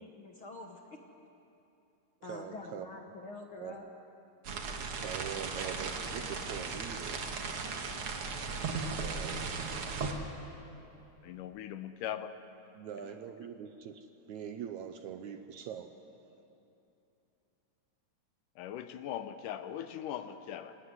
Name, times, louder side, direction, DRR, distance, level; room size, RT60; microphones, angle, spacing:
voice 1, 0.0-1.0 2.2-3.9, left 3 dB, 55° left, 3 dB, 1.5 m, -46 dB
voice 2, 2.2-2.9 3.6-3.8 4.9-7.2 9.0-9.5 12.8-16.0, right 8 dB, 70° right, 8 dB, 1.9 m, -43 dB
sound 1, 4.4-10.1, right 4 dB, 50° right, 2.1 m, -37 dB
voice 3, 10.8-12.3 13.0-13.2 18.6-20.8, left 10 dB, 75° left, 10 dB, 2.2 m, -40 dB
26.0 x 17.5 x 9.7 m, 2.8 s
omnidirectional pair, 4.0 m